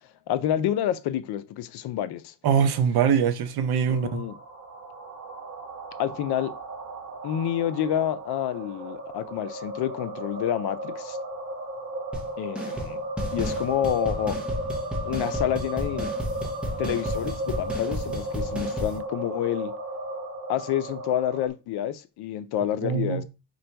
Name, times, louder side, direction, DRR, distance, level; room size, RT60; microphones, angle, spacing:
voice 1, 0.3-2.3 3.9-4.4 6.0-6.5 7.2-11.2 12.4-13.0 13.3-14.4 15.0-16.1 16.8-19.7 20.5-23.2, left 11 dB, 70° left, 0.5 m, -28 dB
voice 2, 2.4-4.2 22.8-23.2, right 7 dB, 65° right, 0.6 m, -23 dB
sound 1, 3.6-21.5, right 1 dB, 35° right, 0.9 m, -35 dB
sound 2, 12.1-12.3 12.5-12.9 13.2-19.0, equal, 5° right, 0.6 m, -33 dB
3.9 x 2.3 x 4.4 m
cardioid pair, 175°, 41 cm